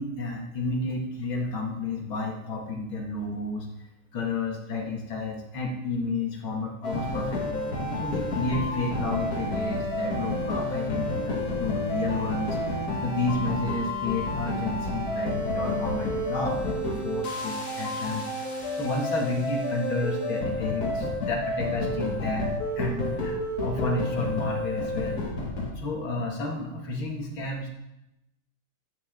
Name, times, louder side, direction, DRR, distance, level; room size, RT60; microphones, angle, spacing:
voice 1, 0.0-3.7 4.1-7.7 8.0-12.6 13.0-25.3 25.8-27.7, left 3 dB, 80° left, 0 dB, 2.9 m, -31 dB
sound 1, 6.8-25.7, left 1 dB, 45° left, 2.4 m, -30 dB
14.5 x 12.0 x 3.9 m, 0.91 s
omnidirectional pair, 2.2 m